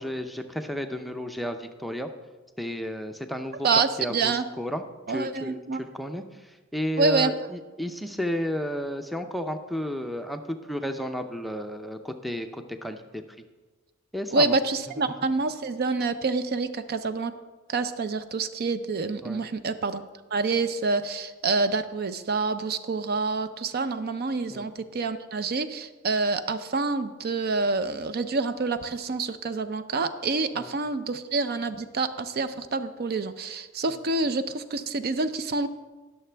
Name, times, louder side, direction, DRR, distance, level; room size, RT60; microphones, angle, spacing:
voice 1, 0.0-2.1 2.6-3.7 4.0-13.2 14.1-14.6 19.2-19.5 24.5-24.7 30.6-30.7, equal, ahead, 5 dB, 0.5 m, -33 dB
voice 2, 3.6-4.5 5.1-5.8 7.0-7.3 14.3-17.3 17.7-20.0 20.3-35.7, right 3 dB, 50° right, 11 dB, 0.5 m, -27 dB
20.0 x 6.7 x 3.4 m, 1.3 s
head